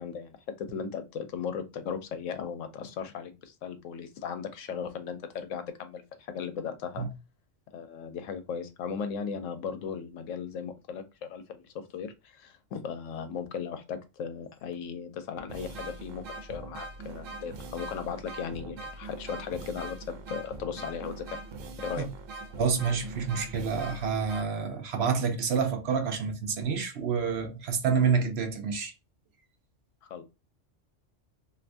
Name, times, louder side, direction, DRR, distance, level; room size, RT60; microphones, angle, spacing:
voice 1, 0.0-6.0 6.3-7.1 7.7-21.4 21.8-22.1 30.0-30.2, left 6 dB, 90° left, 1.0 m, -37 dB
sound 1, 14.7-14.8 15.4-24.4, right 2 dB, 90° right, 1.0 m, -42 dB
voice 2, 22.6-28.9, right 6 dB, 65° right, 0.8 m, -28 dB
2.6 x 2.5 x 3.3 m
omnidirectional pair, 1.3 m